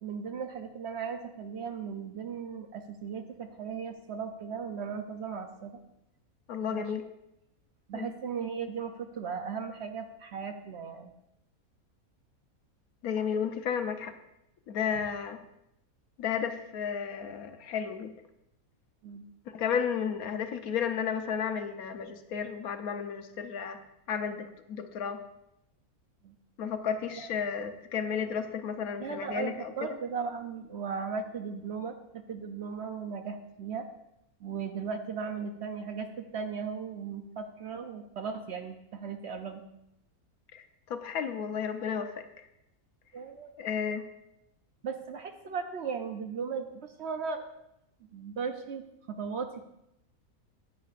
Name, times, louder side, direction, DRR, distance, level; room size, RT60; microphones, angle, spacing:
voice 1, 0.0-5.8 6.7-6.9 7.9-11.1 19.0-19.2 26.2-26.3 27.2-27.3 29.0-33.9 34.4-39.6 43.1-43.5 44.8-47.4 48.1-49.6, right 6 dB, 60° right, 6 dB, 0.8 m, -37 dB
voice 2, 6.5-7.1 7.9-8.1 13.0-14.1 14.7-15.4 16.2-18.1 19.5-23.8 24.1-25.2 26.6-29.7 40.5-42.2 43.6-44.0, left 7 dB, 80° left, 7 dB, 1.3 m, -33 dB
14.5 x 9.4 x 2.5 m, 0.83 s
omnidirectional pair, 1.5 m